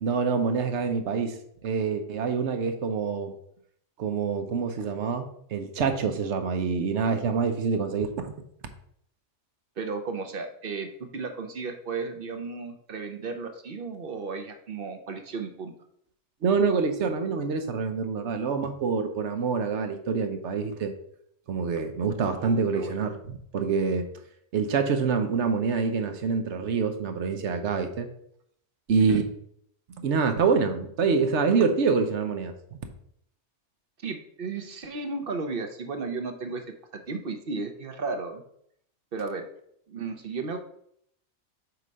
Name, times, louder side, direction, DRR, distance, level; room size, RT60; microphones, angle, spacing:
voice 1, 0.0-3.3 4.0-8.3 16.4-20.9 21.5-24.1 24.5-28.1 28.9-29.2 30.0-32.8, right 5 dB, 70° right, 7 dB, 1.1 m, -26 dB
voice 2, 9.8-15.7 22.2-23.0 29.1-29.2 34.0-36.6 36.9-38.4 39.1-39.4 39.9-40.6, right 4 dB, 55° right, 5 dB, 0.9 m, -34 dB
7.8 x 2.9 x 5.2 m, 0.69 s
omnidirectional pair, 1.2 m